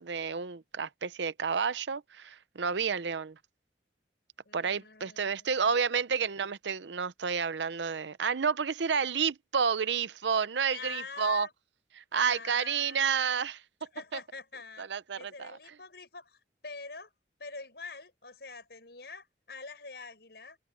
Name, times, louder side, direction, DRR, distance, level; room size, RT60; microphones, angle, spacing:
voice 1, 0.0-3.4 4.5-11.5 12.0-13.6 14.8-15.6, right 6 dB, 90° right, 0.7 m, -30 dB
voice 2, 4.5-5.7 10.6-11.5 12.1-13.4 13.9-14.9 15.2-16.4 16.6-17.1 17.4-20.6, left 4 dB, 70° left, 5.3 m, -45 dB
head